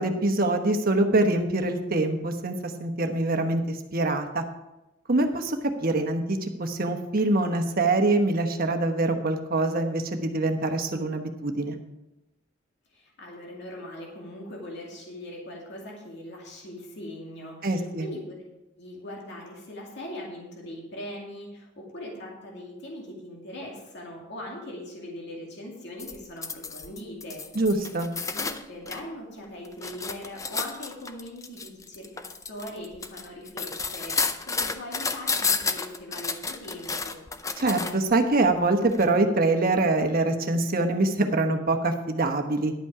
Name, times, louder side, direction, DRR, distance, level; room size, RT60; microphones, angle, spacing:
voice 1, 0.0-2.5 2.8-3.6 3.9-4.4 5.1-11.8 17.6-18.1 27.5-28.1 37.6-42.7, right 2 dB, 45° right, 5 dB, 1.2 m, -24 dB
voice 2, 12.9-18.4 18.8-27.4 27.7-27.9 28.3-37.2, left 1 dB, 55° left, -2 dB, 2.4 m, -40 dB
sound 1, 26.0-29.0 29.4-38.1 38.9-39.0, left 4 dB, 15° left, 0.5 m, -31 dB
11.5 x 8.3 x 4.9 m, 0.95 s
head